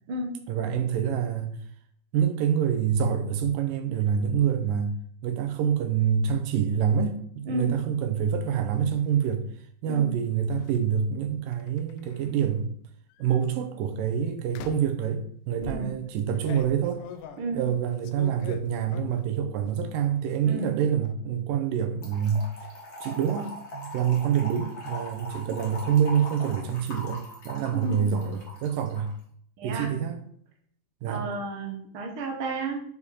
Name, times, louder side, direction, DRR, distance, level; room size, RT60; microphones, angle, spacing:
voice 1, 0.5-1.6 2.1-5.0 5.2-9.5 9.8-12.8 13.2-17.0 17.5-22.5 23.0-29.1 29.6-30.2 31.0-31.3, right 8 dB, 85° right, 2.3 m, -26 dB
sound 1, 8.2-8.8 10.5-10.8 11.5-12.4 13.1-13.4 14.5-15.0 15.6-19.4 19.7-20.3 20.5-21.1, left 7 dB, 80° left, 2.0 m, -44 dB
voice 2, 20.5-20.8 27.7-28.3 29.6-29.9 31.1-32.8, right 2 dB, 60° right, 1.5 m, -32 dB
Trickle dribble / Fill (with liquid), 22.0-29.1, left 1 dB, 50° left, 0.8 m, -41 dB
6.7 x 4.9 x 4.2 m
omnidirectional pair, 4.0 m